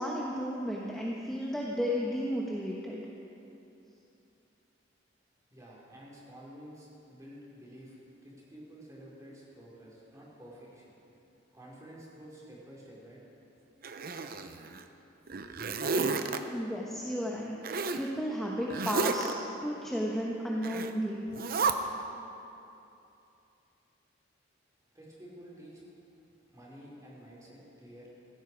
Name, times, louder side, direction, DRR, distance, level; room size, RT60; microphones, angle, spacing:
voice 1, 0.0-3.0 16.5-17.6 17.9-19.3 19.6-21.3, equal, 5° left, -4 dB, 1.2 m, -33 dB
voice 2, 5.5-10.9 11.5-13.2 13.6-13.7 24.9-25.9 26.5-28.1, equal, 20° right, -6 dB, 4.3 m, -50 dB
Zipper (clothing), 13.8-14.8 15.3-16.4 17.6-18.1 18.7-19.3 20.6-20.9 21.3-21.7, right 4 dB, 50° right, 0.8 m, -31 dB
17.5 x 15.5 x 4.7 m, 2.8 s
head